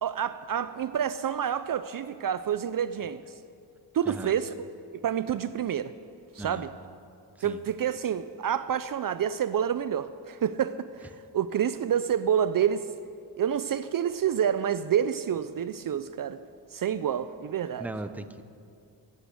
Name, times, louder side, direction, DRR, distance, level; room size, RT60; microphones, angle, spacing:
voice 1, 0.0-3.2 3.9-4.5 5.0-5.9 6.3-6.7 7.4-12.9 13.4-16.4 16.7-17.9, right 9 dB, 50° right, 13 dB, 0.5 m, -28 dB
voice 2, 17.8-18.4, right 2 dB, 5° right, 9 dB, 0.6 m, -37 dB
16.5 x 8.0 x 8.3 m, 2.5 s
cardioid pair, 90°, 44 cm